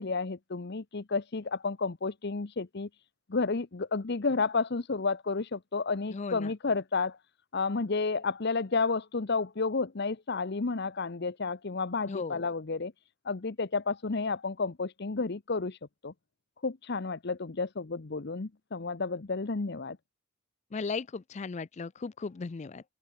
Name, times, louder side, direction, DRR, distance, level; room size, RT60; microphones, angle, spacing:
voice 1, 0.0-2.9 3.3-7.2 7.5-12.9 13.2-15.8 16.0-16.1 16.6-20.0, left 4 dB, 50° left, 0.8 m, -31 dB
voice 2, 6.1-6.5 12.1-12.5 20.7-22.8, left 4 dB, 35° left, 0.4 m, -36 dB
head